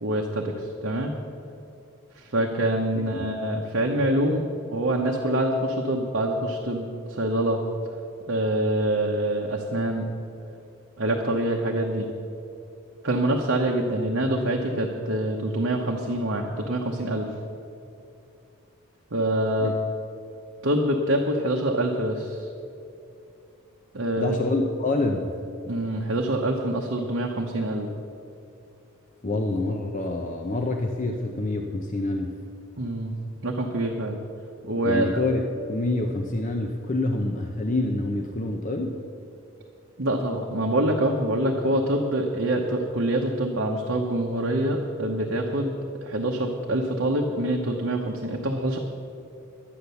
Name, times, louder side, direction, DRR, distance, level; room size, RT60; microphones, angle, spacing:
voice 1, 0.0-1.1 2.2-4.4 4.7-7.6 8.3-10.1 11.0-12.1 13.0-17.3 19.1-19.7 20.6-22.5 23.9-24.4 25.6-27.9 29.3-29.4 32.8-33.1 33.4-34.2 34.6-35.1 40.0-45.8 46.0-48.8, right 1 dB, 55° right, 1 dB, 0.9 m, -25 dB
voice 2, 2.9-3.3 19.6-19.7 24.2-25.3 29.2-32.3 34.8-39.0, left 2 dB, 35° left, 3 dB, 0.7 m, -27 dB
11.5 x 9.7 x 6.9 m, 2.7 s
head